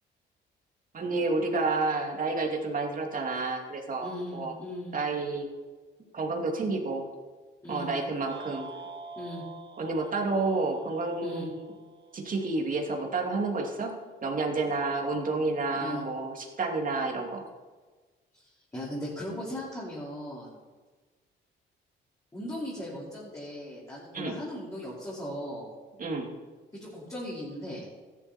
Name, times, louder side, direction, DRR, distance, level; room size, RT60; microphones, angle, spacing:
voice 1, 0.9-4.5 4.9-5.5 6.1-7.1 7.7-8.7 9.8-11.7 12.1-13.9 14.2-17.4 24.1-24.3 26.0-26.3, right 3 dB, 45° right, 1 dB, 2.7 m, -30 dB
voice 2, 4.0-4.9 7.6-7.9 9.2-9.4 11.2-11.5 15.7-16.0 18.3-20.6 22.3-25.7 26.8-27.9, left 1 dB, 15° left, -8 dB, 5.0 m, -38 dB
sound 1, 8.3-12.6, right 4 dB, 65° right, 1.8 m, -46 dB
14.0 x 11.5 x 4.5 m, 1.3 s
cardioid pair, 90°, 20 cm